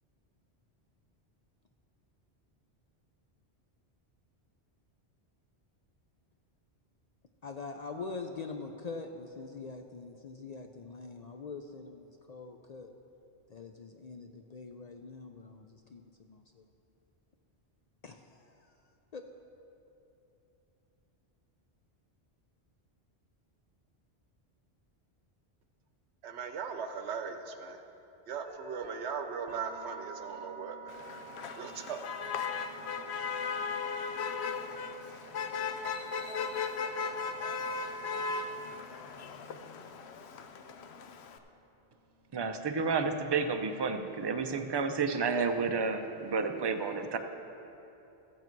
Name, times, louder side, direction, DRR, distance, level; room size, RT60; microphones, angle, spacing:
voice 1, 7.4-12.9 13.5-16.6 18.0-18.7 19.1-19.2, left 4 dB, 55° left, 4 dB, 0.5 m, -44 dB
voice 2, 26.2-27.8 28.3-31.0 31.6-32.0, right 6 dB, 90° right, 7 dB, 1.0 m, -39 dB
sound 1, 28.4-42.3, right 5 dB, 65° right, 0.9 m, -53 dB
Motor vehicle (road), 30.9-41.4, left 5 dB, 80° left, 0.9 m, -37 dB
voice 3, 42.3-47.2, right 4 dB, 35° right, 7 dB, 0.4 m, -31 dB
14.0 x 8.2 x 4.5 m, 2.9 s
omnidirectional pair, 1.1 m